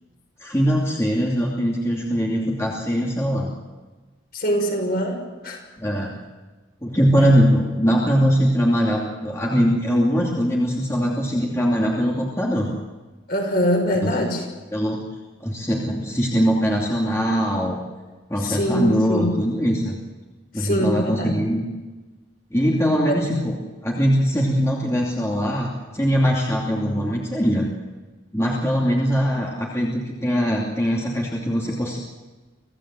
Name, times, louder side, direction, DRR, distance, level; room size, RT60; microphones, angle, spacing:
voice 1, 0.4-3.5 5.8-6.1 6.8-12.7 14.7-15.0 15.4-17.8 18.3-20.0 20.5-21.6 22.5-23.6 23.8-27.7 28.3-32.0, equal, 15° left, -3 dB, 2.8 m, -21 dB
voice 2, 4.3-5.2 5.4-5.6 7.2-7.4 13.3-14.5 18.4-19.3 20.5-21.4 23.1-23.3, equal, 50° left, 2 dB, 6.3 m, -23 dB
26.5 x 17.0 x 7.7 m, 1.3 s
head